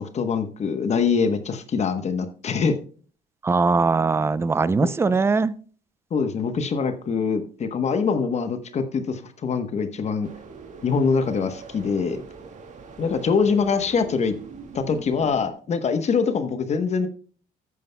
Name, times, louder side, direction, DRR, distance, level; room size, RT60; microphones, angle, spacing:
voice 1, 0.0-2.8 4.8-4.9 6.1-10.3 10.8-12.2 13.0-14.4 14.7-17.1, left 5 dB, 40° left, 1.0 m, -24 dB
voice 2, 3.4-5.5, right 4 dB, 15° right, 0.4 m, -21 dB
sound 1, 10.2-15.5, right 4 dB, 45° right, 1.8 m, -42 dB
13.0 x 9.5 x 2.2 m
cardioid pair, 110°, 17 cm